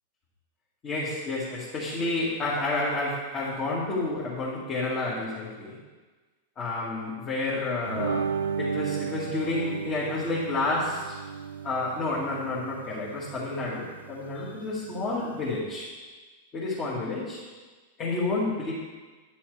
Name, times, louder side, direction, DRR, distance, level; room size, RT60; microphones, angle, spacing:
voice 1, 0.8-5.8 6.6-11.2 11.6-15.9 16.5-17.4 18.0-18.7, left 2 dB, 30° left, -7 dB, 2.0 m, -30 dB
sound 1, 7.9-15.6, right 6 dB, 85° right, 0.4 m, -35 dB
9.3 x 6.9 x 3.3 m, 1.3 s
hypercardioid pair, 100°, 0 cm